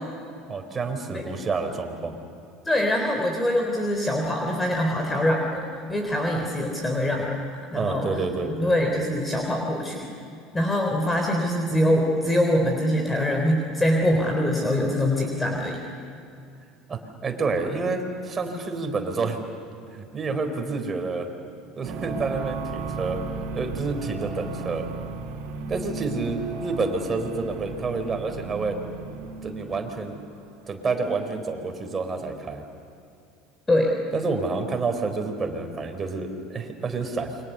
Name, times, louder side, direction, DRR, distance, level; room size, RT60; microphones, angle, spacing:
voice 1, 0.5-2.2 7.7-8.5 16.9-19.4 19.9-21.3 21.8-23.2 23.5-24.9 25.7-28.8 29.4-30.2 30.7-32.6 34.1-37.4, right 4 dB, 30° right, 5 dB, 4.4 m, -28 dB
voice 2, 2.7-7.4 7.7-8.1 8.6-10.1 10.5-15.8 33.7-33.9, left 1 dB, 15° left, 2 dB, 3.7 m, -24 dB
sound 1, 21.8-30.1, right 4 dB, 65° right, 3.9 m, -35 dB
29.0 x 24.5 x 6.9 m, 2.5 s
hypercardioid pair, 75°, 0 cm